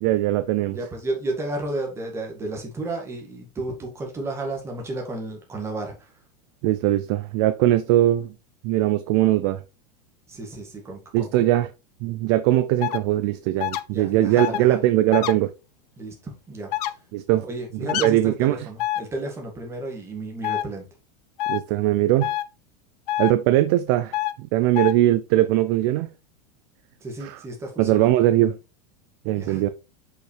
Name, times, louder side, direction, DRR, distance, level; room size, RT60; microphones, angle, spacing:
voice 1, 0.0-0.8 6.6-8.3 8.6-9.6 11.1-11.7 12.0-15.5 17.1-17.4 17.8-18.7 21.5-22.3 23.2-26.1 27.2-27.4 27.8-28.6 29.3-29.7, right 14 dB, 40° right, 0.4 m, -21 dB
voice 2, 0.7-6.1 10.3-11.4 13.9-14.9 16.0-16.7 17.4-20.9 27.0-28.1 29.3-29.6, right 2 dB, 10° right, 1.9 m, -32 dB
sound 1, 12.8-13.0 13.6-13.8 14.4-14.6 15.1-15.3 16.7-16.9 17.9-18.1 18.8-19.0 20.4-20.6 21.4-21.6 22.2-22.4 23.1-23.3 24.1-24.3 24.8-24.9, left 14 dB, 65° left, 0.6 m, -25 dB
6.3 x 5.6 x 3.2 m
supercardioid pair, 160°, 21 cm